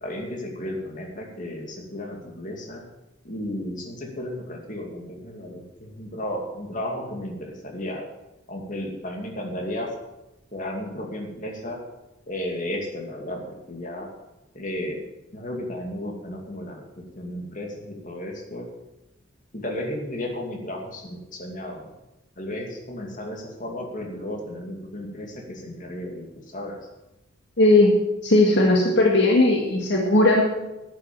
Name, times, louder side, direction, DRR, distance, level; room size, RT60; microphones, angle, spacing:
voice 1, 0.0-2.8 3.2-8.1 8.5-9.9 10.5-11.8 12.3-14.1 14.5-15.0 15.3-18.7 19.5-21.9 22.4-26.8, left 1 dB, 40° left, 1 dB, 2.4 m, -34 dB
voice 2, 27.6-28.0 28.2-30.4, left 2 dB, 60° left, 0 dB, 1.9 m, -17 dB
11.5 x 9.0 x 7.6 m, 0.98 s
head